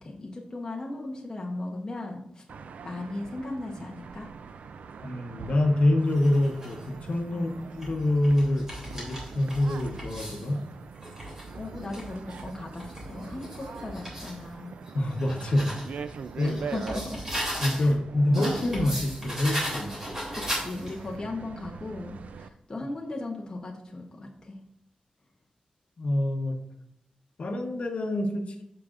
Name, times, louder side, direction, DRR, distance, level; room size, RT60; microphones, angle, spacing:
voice 1, 0.0-2.4 2.8-4.3 7.3-7.6 11.6-14.7 16.4-17.2 17.8-18.0 20.0-24.6, left 2 dB, 25° left, -1 dB, 0.9 m, -37 dB
sound 1, 2.5-22.5, right 5 dB, 80° right, 0.4 m, -43 dB
voice 2, 5.0-8.7 8.9-10.6 14.9-15.7 16.4-16.6 17.6-20.0 26.0-26.6 27.4-28.6, left 1 dB, 55° left, 3 dB, 1.0 m, -26 dB
sound 2, 6.1-6.8 7.5-10.5 10.9-14.4 14.9-17.9 18.3-21.1, equal, 20° right, 2.9 m, -37 dB
14.0 x 4.9 x 2.5 m, 0.77 s
wide cardioid pair, 160°, 2 cm